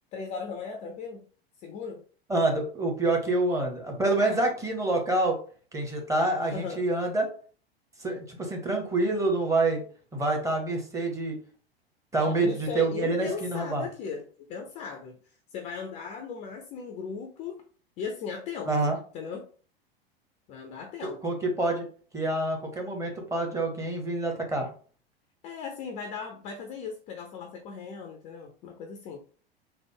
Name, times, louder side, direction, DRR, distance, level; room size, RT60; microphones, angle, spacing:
voice 1, 0.1-1.2 1.6-2.0 4.2-4.4 6.5-6.8 12.2-14.2 14.5-15.2 15.5-17.6 18.0-19.5 20.5-21.2 25.4-29.2, left 6 dB, 25° left, 4 dB, 0.3 m, -37 dB
voice 2, 2.3-5.4 5.7-7.3 8.0-9.8 10.1-11.4 12.1-13.9 18.7-19.0 21.2-21.9 22.1-24.7, right 2 dB, 10° right, 1 dB, 0.7 m, -27 dB
3.2 x 2.0 x 3.2 m, 0.42 s
figure-of-eight pair, 85°, 31 cm